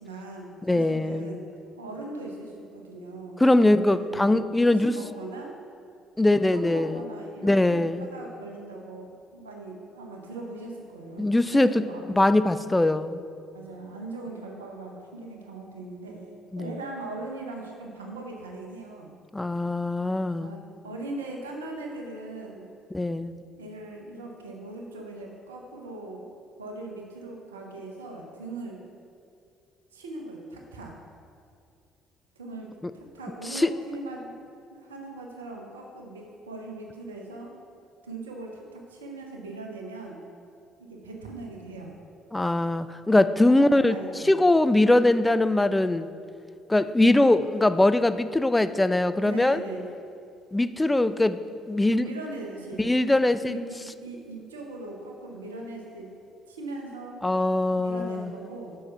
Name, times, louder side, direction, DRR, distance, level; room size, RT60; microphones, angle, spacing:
voice 1, 0.0-1.5 1.8-5.6 6.2-12.0 13.5-16.3 16.6-19.1 20.4-22.7 23.5-26.3 26.6-28.8 29.9-30.9 32.4-32.7 32.9-34.3 34.7-37.5 38.0-40.2 40.8-42.0 43.5-44.3 49.2-49.8 51.8-52.9 53.2-56.1 56.5-57.2 57.7-58.8, right 2 dB, 75° right, 1 dB, 0.8 m, -39 dB
voice 2, 0.7-1.3 3.4-4.9 6.2-7.0 7.4-8.1 11.2-11.8 12.1-13.2 16.5-16.7 19.3-20.5 22.9-23.4 33.5-33.7 42.3-44.0 44.2-46.1 46.7-49.6 50.5-51.4 51.7-52.1 52.8-53.6 57.2-58.3, left 2 dB, 10° left, 12 dB, 0.3 m, -22 dB
6.5 x 5.7 x 5.6 m, 2.4 s
figure-of-eight pair, 50°, 0 cm